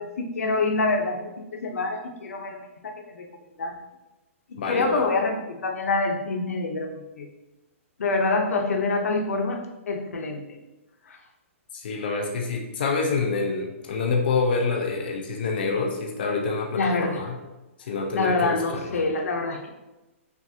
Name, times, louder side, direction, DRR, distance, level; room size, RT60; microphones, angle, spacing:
voice 1, 0.0-2.6 2.8-3.3 3.6-3.7 4.7-7.3 8.0-10.6 11.1-11.2 16.7-17.2 18.1-19.7, left 3 dB, 90° left, 3 dB, 0.7 m, -26 dB
voice 2, 4.6-5.1 11.7-17.4 17.8-19.0, left 4 dB, 40° left, 1 dB, 0.5 m, -27 dB
5.9 x 2.4 x 2.7 m, 1.0 s
hypercardioid pair, 180°, 8 cm